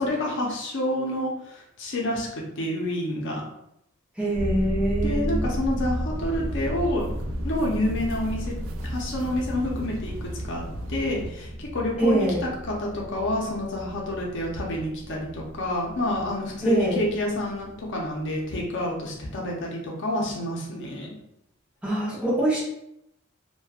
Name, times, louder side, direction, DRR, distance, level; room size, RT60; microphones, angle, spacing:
voice 1, 0.0-2.3 2.6-3.4 5.0-7.1 7.4-8.6 8.8-10.6 10.9-21.2, left 1 dB, 60° left, -2 dB, 0.6 m, -28 dB
voice 2, 4.2-5.5 12.0-12.4 16.6-17.0 21.8-22.6, right 1 dB, 5° right, -7 dB, 0.7 m, -24 dB
sound 1, 4.3-18.8 19.1-19.2, equal, 25° left, 0.7 m, -34 dB
sound 2, 6.1-11.3, right 1 dB, 70° right, 0.3 m, -39 dB
3.0 x 2.2 x 2.3 m, 0.79 s
head